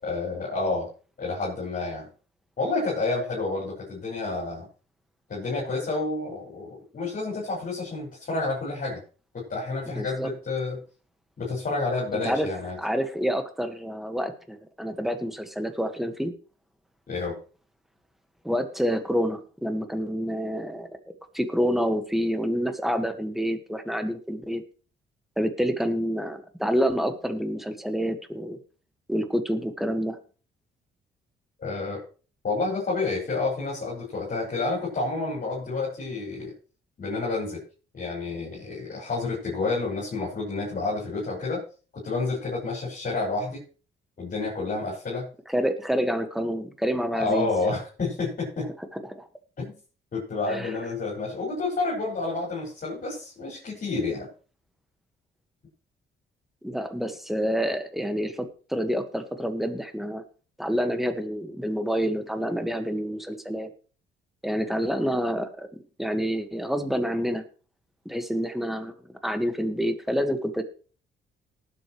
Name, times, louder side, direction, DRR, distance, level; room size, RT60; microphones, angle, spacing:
voice 1, 0.0-0.9 1.2-2.1 2.6-4.7 5.3-9.0 9.3-10.8 11.4-12.8 17.1-17.3 31.6-32.0 32.4-36.5 37.0-37.6 37.9-41.6 41.9-43.6 44.2-45.3 47.2-48.7 49.6-49.7 50.1-54.3, left 3 dB, 45° left, -6 dB, 6.2 m, -29 dB
voice 2, 10.0-10.3 12.1-12.5 12.8-16.3 18.4-20.9 21.3-24.6 25.4-28.6 29.1-30.2 45.5-47.5 48.9-49.3 50.5-50.7 56.6-60.2 60.6-63.7 64.4-67.4 68.1-70.6, equal, ahead, 7 dB, 1.8 m, -28 dB
19.0 x 8.1 x 3.3 m, 0.38 s
cardioid pair, 90°, 20 cm